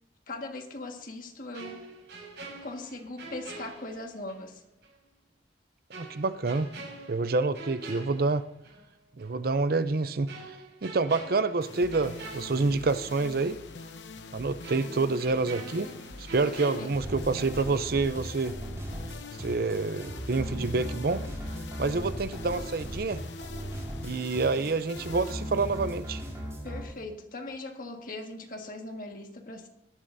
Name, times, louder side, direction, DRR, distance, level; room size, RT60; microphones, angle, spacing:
voice 1, 0.3-1.9 2.6-4.6 16.4-17.0 26.6-29.7, left 2 dB, 50° left, 3 dB, 1.7 m, -40 dB
sound 1, 1.5-4.5 4.8-5.0 5.9-8.9 9.2-9.4 10.3-13.3 13.6-13.7 14.6-17.7 17.9-18.2, right 3 dB, 80° right, 5.9 m, -45 dB
voice 2, 6.0-6.7 7.1-8.5 9.2-10.6 10.8-13.6 14.3-15.9 16.2-18.6 19.4-21.2 21.8-23.2 24.0-26.2, right 3 dB, 55° right, 13 dB, 0.6 m, -28 dB
sound 2, 11.6-27.0, left 3 dB, 90° left, 0.8 m, -44 dB
sound 3, 16.9-26.8, equal, 15° right, 4.7 m, -38 dB
19.0 x 12.0 x 2.7 m, 0.80 s
head